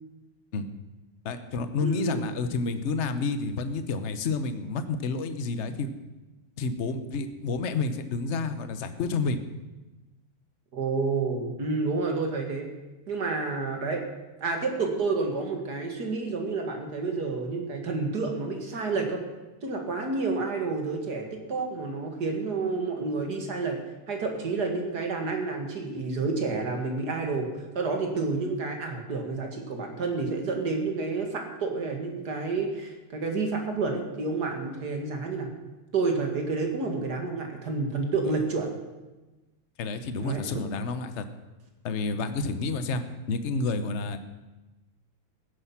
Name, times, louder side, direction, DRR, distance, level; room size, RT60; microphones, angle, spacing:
voice 1, 1.2-5.9 6.6-9.4 38.3-38.4 39.8-41.2 41.8-44.2, left 4 dB, 50° left, 10 dB, 0.8 m, -30 dB
voice 2, 1.8-2.2 10.7-12.7 13.1-14.0 14.4-19.2 19.6-23.8 24.1-27.5 27.7-35.5 35.9-38.7 40.2-40.4, right 3 dB, 50° right, 3 dB, 2.4 m, -29 dB
16.0 x 10.0 x 5.9 m, 1.1 s
omnidirectional pair, 2.4 m